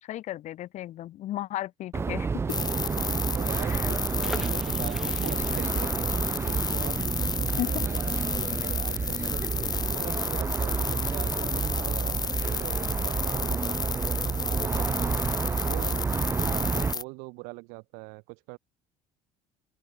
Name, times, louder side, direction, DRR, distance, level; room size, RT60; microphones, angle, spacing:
voice 1, 0.0-2.3 3.6-3.9 7.6-7.7, left 13 dB, 60° left, 2.2 m, -34 dB
sound 1, 1.9-16.9, right 5 dB, 20° right, 0.4 m, -29 dB
sound 2, 2.5-17.0, left 5 dB, 30° left, 2.0 m, -32 dB
voice 2, 2.5-8.1 8.6-15.1 15.6-16.1 16.3-18.6, right 32 dB, 75° right, 7.4 m, -43 dB
sound 3, 4.2-9.8 10.1-10.2 10.5-10.8, right 1 dB, 5° right, 3.4 m, -44 dB
open air
supercardioid pair, 75°, 14 cm